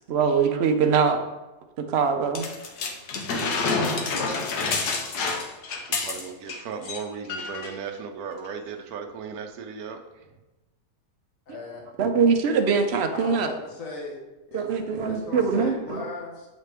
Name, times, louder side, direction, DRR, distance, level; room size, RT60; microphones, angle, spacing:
voice 1, 0.1-1.2 1.8-2.5 11.5-11.6 12.0-13.5 14.5-16.0, right 5 dB, 60° right, 6 dB, 0.7 m, -23 dB
sound 1, 2.3-6.6 6.8-7.0 7.3-7.7 8.4-8.5, left 4 dB, 90° left, 1.4 m, -28 dB
voice 2, 5.8-10.3, right 6 dB, 75° right, 4 dB, 1.1 m, -36 dB
voice 3, 11.5-11.9 13.1-14.2 14.5-16.5, left 3 dB, 60° left, -2 dB, 1.7 m, -37 dB
8.2 x 4.1 x 3.4 m, 1.1 s
omnidirectional pair, 1.6 m